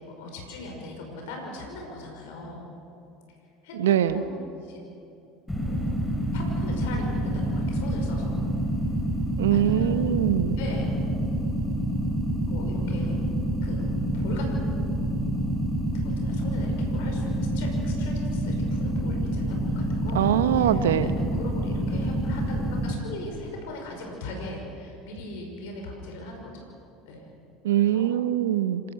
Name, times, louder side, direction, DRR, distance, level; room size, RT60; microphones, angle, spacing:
voice 1, 0.2-2.7 3.6-4.3 4.6-4.8 5.6-5.9 6.3-8.4 9.5-10.0 10.6-10.9 12.5-13.2 13.6-13.8 14.1-14.5 15.9-20.3 20.6-26.7 27.0-27.3 27.7-28.1, left 2 dB, 70° left, 1 dB, 5.6 m, -39 dB
voice 2, 3.8-4.2 9.4-10.6 20.1-21.1 27.6-28.8, right 11 dB, 80° right, 13 dB, 0.9 m, -23 dB
sound 1, 5.5-22.9, equal, 10° left, 3.8 m, -27 dB
26.5 x 18.5 x 6.4 m, 2.6 s
hypercardioid pair, 75°, 0 cm